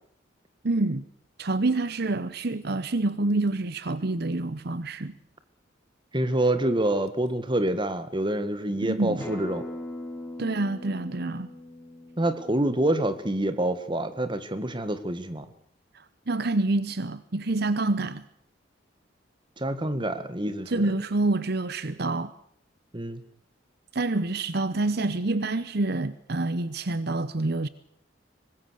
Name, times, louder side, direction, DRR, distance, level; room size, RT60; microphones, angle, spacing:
voice 1, 0.6-1.0 1.4-5.1 8.8-9.2 10.4-11.5 15.9-18.3 20.7-22.3 23.9-27.7, right 2 dB, 55° right, 0.9 m, -27 dB
voice 2, 6.1-9.6 12.2-15.5 19.6-20.8 22.9-23.2, right 1 dB, 25° right, 1.9 m, -27 dB
Acoustic guitar, 9.2-14.4, left 1 dB, 10° left, 4.3 m, -42 dB
24.5 x 20.5 x 6.6 m
head